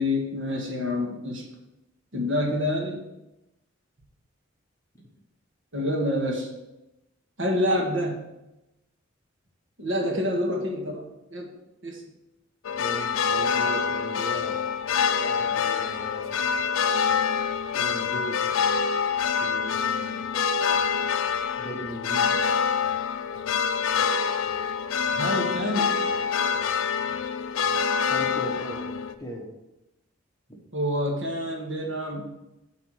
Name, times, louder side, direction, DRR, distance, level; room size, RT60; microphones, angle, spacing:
voice 1, 0.0-1.4 2.1-3.0 5.7-6.5 7.4-8.2 9.8-11.5 11.8-12.0 25.1-25.9 30.7-32.3, left 1 dB, 70° right, 0 dB, 1.7 m, -27 dB
sound 1, 12.6-29.1, left 6 dB, 85° left, 0.5 m, -26 dB
voice 2, 12.8-14.6 15.2-16.4 17.7-18.4 19.4-20.2 21.6-22.3 24.5-24.6 28.1-28.9 29.2-29.5 30.5-30.6, equal, 15° left, -1 dB, 1.4 m, -38 dB
8.3 x 4.2 x 6.4 m, 0.94 s
head